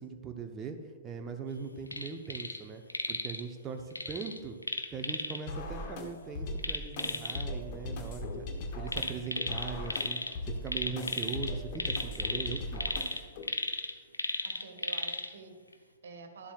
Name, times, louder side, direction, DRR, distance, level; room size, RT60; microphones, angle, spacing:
voice 1, 0.0-2.8 3.1-4.6 4.9-8.5 8.7-12.8, right 5 dB, 20° right, 4 dB, 0.8 m, -40 dB
sound 1, 1.9-2.6 2.9-3.4 3.9-5.4 6.6-7.4 8.9-10.3 10.7-15.3 15.7-15.8, left 2 dB, 85° left, 0.9 m, -35 dB
sound 2, 5.5-13.5, left 1 dB, 40° left, 1.5 m, -39 dB
voice 2, 14.4-16.5, right 4 dB, 60° right, 6 dB, 1.6 m, -49 dB
14.0 x 11.5 x 2.4 m, 1.5 s
figure-of-eight pair, 110°, 0 cm